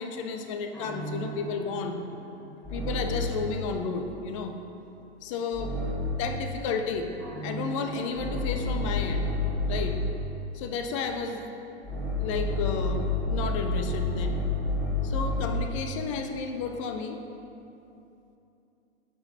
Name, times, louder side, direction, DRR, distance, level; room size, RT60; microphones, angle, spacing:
voice 1, 0.0-2.0 2.7-4.5 5.2-5.8 6.1-7.1 7.4-9.3 9.7-10.0 10.5-11.5 12.2-14.4 15.0-17.2, left 5 dB, 30° left, 5 dB, 0.5 m, -32 dB
sound 1, 0.7-3.5 5.5-6.3 7.2-10.2 11.8-15.7, left 2 dB, 5° left, 1.3 m, -30 dB
10.5 x 4.9 x 2.7 m, 2.8 s
figure-of-eight pair, 105°, 34 cm